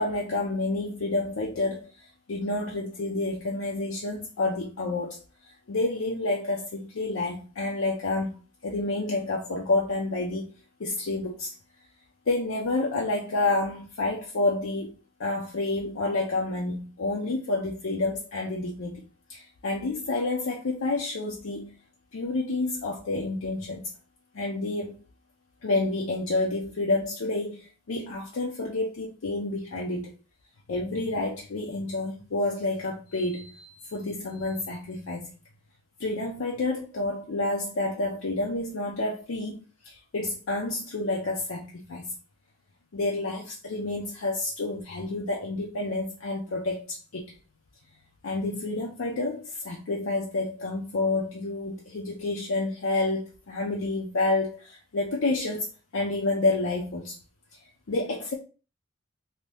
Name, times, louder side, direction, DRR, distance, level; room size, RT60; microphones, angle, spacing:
voice 1, 0.0-5.2 5.5-10.5 10.8-11.5 12.3-19.0 19.3-21.7 22.1-23.9 24.3-25.0 25.6-30.1 30.7-35.3 36.0-42.1 42.9-47.3 48.2-55.7 55.9-57.2 57.9-58.3, left 2 dB, 75° left, 0.6 m, -29 dB
2.7 x 2.7 x 3.3 m
head